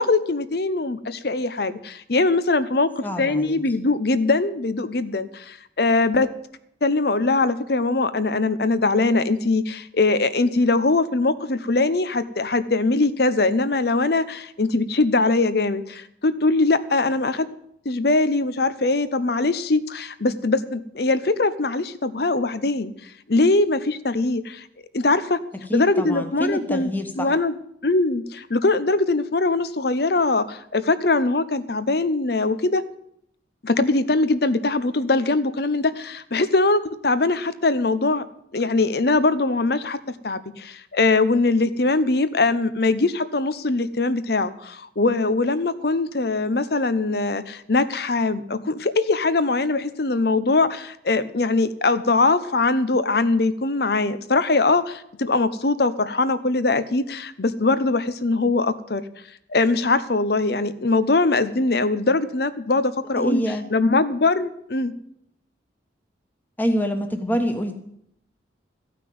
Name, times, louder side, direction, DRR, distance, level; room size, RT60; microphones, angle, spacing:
voice 1, 0.0-6.3 6.8-17.5 17.8-22.9 23.3-24.6 24.9-25.4 25.7-26.9 27.1-27.5 27.8-32.8 33.6-38.2 38.5-40.0 40.2-59.0 59.5-63.4 63.7-64.9, left 3 dB, 55° left, 13 dB, 0.8 m, -22 dB
voice 2, 3.0-3.6 25.7-27.3 63.1-63.6 66.6-67.7, equal, 10° left, 5 dB, 1.3 m, -26 dB
14.5 x 5.9 x 9.3 m, 0.73 s
head